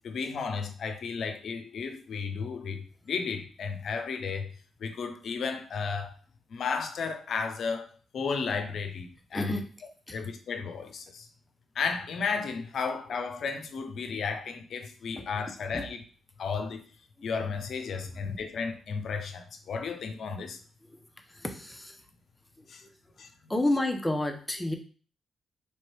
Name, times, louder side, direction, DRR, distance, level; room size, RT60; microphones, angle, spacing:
voice 1, 0.0-4.5 4.8-6.1 6.5-9.5 10.1-11.3 11.7-16.0 16.4-16.8 17.2-20.6 22.7-22.8 23.2-23.3, left 5 dB, 65° left, 0.7 m, -33 dB
voice 2, 9.3-9.6 10.1-10.2 15.7-15.8 20.9-21.0 21.3-22.0 22.6-22.9 23.5-24.7, left 1 dB, 15° left, 0.9 m, -30 dB
3.4 x 3.1 x 4.5 m
supercardioid pair, 50°, 0 cm